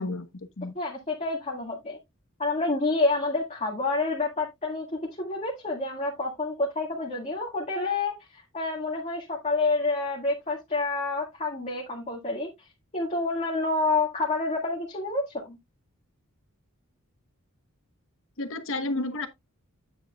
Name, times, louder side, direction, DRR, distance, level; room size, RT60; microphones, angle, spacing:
voice 1, 0.0-0.7 18.4-19.3, left 2 dB, 65° left, 1.2 m, -31 dB
voice 2, 0.8-2.0 2.4-12.5 12.9-15.6, left 3 dB, 30° left, 1.9 m, -28 dB
9.2 x 7.7 x 2.3 m
head